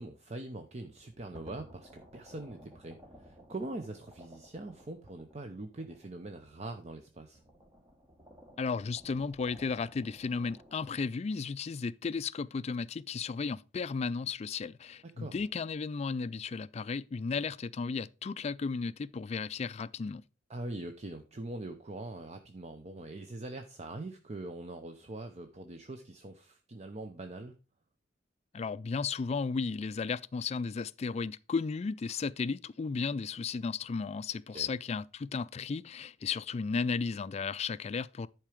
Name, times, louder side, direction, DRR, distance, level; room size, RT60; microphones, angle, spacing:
voice 1, 0.0-7.4 15.0-15.4 20.5-27.6 34.5-34.7, right 2 dB, 35° right, 0.7 m, -43 dB
sound 1, 0.9-7.0 7.3-10.9, equal, 20° right, 1.4 m, -56 dB
voice 2, 8.6-20.2 28.5-38.3, left 5 dB, 35° left, 0.3 m, -34 dB
10.5 x 4.6 x 5.0 m
head